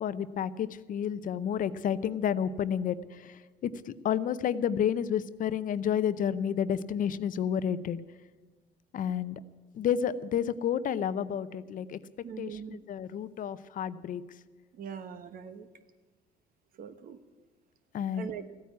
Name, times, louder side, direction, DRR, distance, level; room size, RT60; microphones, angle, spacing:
voice 1, 0.0-8.0 8.9-9.4 9.7-12.0 12.4-14.2 17.9-18.3, left 8 dB, 55° left, 15 dB, 0.7 m, -30 dB
voice 2, 12.2-12.8 14.7-15.7 16.8-17.2 18.1-18.4, right 7 dB, 55° right, 11 dB, 1.2 m, -41 dB
15.5 x 9.4 x 9.4 m, 1.2 s
cardioid pair, 110°, 17 cm